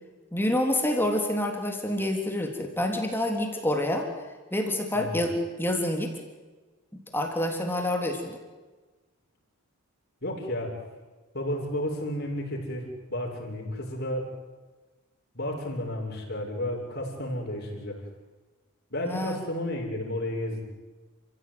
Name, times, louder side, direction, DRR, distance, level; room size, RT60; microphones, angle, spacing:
voice 1, 0.3-4.1 4.5-6.1 7.1-8.4 19.1-19.4, left 1 dB, 10° left, 3 dB, 3.6 m, -27 dB
voice 2, 10.2-10.8 11.3-14.3 15.3-18.0 18.9-20.6, left 1 dB, 45° left, 0 dB, 6.9 m, -32 dB
30.0 x 16.0 x 9.6 m, 1.3 s
head